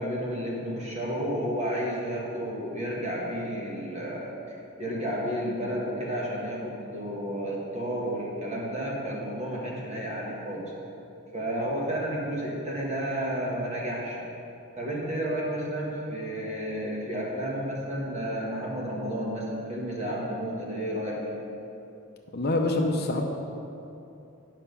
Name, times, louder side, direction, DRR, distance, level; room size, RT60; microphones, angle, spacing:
voice 1, 0.0-10.7 11.3-14.3 14.8-21.4, equal, 30° right, -4 dB, 1.7 m, -31 dB
voice 2, 22.3-23.3, left 2 dB, 45° left, 3 dB, 0.7 m, -25 dB
10.0 x 5.8 x 5.5 m, 2.8 s
head